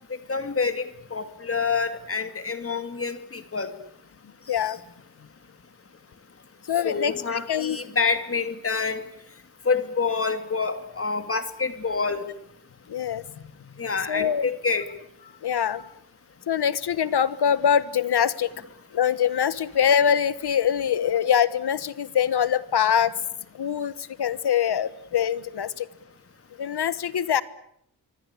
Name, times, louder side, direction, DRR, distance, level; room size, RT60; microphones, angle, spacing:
voice 1, 0.3-0.8 1.1-3.7 4.6-4.7 6.8-9.0 9.6-12.3 13.8-14.9, left 4 dB, 35° left, 9 dB, 2.7 m, -27 dB
voice 2, 6.7-7.8 12.9-13.2 14.1-14.5 15.4-15.9 16.5-18.5 18.9-23.1 23.5-25.9 26.6-27.4, left 8 dB, 80° left, 15 dB, 1.4 m, -24 dB
26.0 x 24.5 x 8.5 m, 0.71 s
wide cardioid pair, 160°, 39 cm